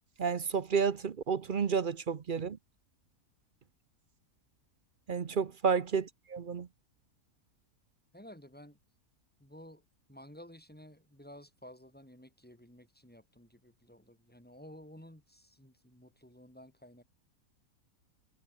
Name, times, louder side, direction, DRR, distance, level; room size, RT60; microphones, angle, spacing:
voice 1, 0.2-2.6 5.1-6.7, right 6 dB, 45° right, 0.8 m, -31 dB
voice 2, 5.2-5.6 8.1-8.8 9.4-9.8 10.1-17.0, equal, 5° left, 5.0 m, -53 dB
omnidirectional pair, 1.7 m